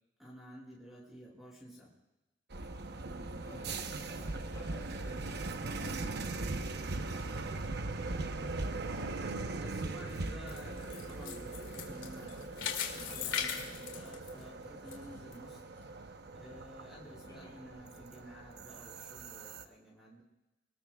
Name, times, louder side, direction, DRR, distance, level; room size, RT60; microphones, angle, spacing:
voice 1, 0.2-1.9 6.7-7.8 9.2-15.6 16.0-16.1 16.3-20.2, equal, ahead, -5 dB, 7.1 m, -52 dB
sound 1, 2.5-19.6, right 3 dB, 60° right, 0.9 m, -40 dB
voice 2, 3.4-6.6 17.2-17.6, left 1 dB, 20° left, -5 dB, 7.1 m, -53 dB
sound 2, 10.0-14.9 15.3-15.4 16.0-16.1, left 8 dB, 80° left, 2.8 m, -39 dB
29.5 x 19.5 x 2.4 m, 1.0 s
head